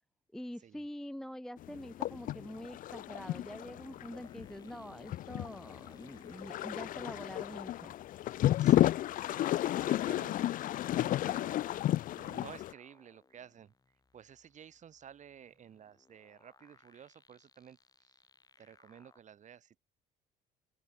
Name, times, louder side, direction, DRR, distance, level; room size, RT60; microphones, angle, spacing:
voice 1, 0.3-7.9, equal, 5° left, 0.6 m, -45 dB
sound 1, 1.6-12.7, left 13 dB, 55° left, 0.4 m, -32 dB
sound 2, 3.8-19.2, left 4 dB, 20° left, 7.6 m, -67 dB
voice 2, 8.6-8.9 9.2-11.6 12.1-13.7 14.1-17.8 18.6-19.8, right 8 dB, 45° right, 2.3 m, -54 dB
open air
cardioid pair, 110°, 17 cm